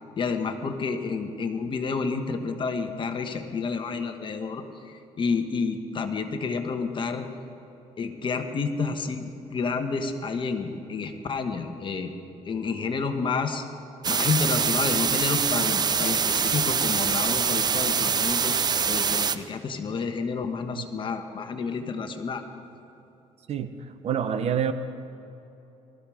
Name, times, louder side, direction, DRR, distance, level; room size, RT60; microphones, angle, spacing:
voice 1, 0.2-7.3 8.0-12.1 12.4-13.6 14.1-22.4, left 4 dB, 40° left, 6 dB, 1.4 m, -30 dB
sound 1, 14.0-19.4, right 6 dB, 35° right, 0.6 m, -24 dB
voice 2, 24.0-24.7, right 8 dB, 55° right, 10 dB, 0.9 m, -26 dB
20.0 x 13.5 x 5.0 m, 2.9 s
cardioid pair, 110°, 13 cm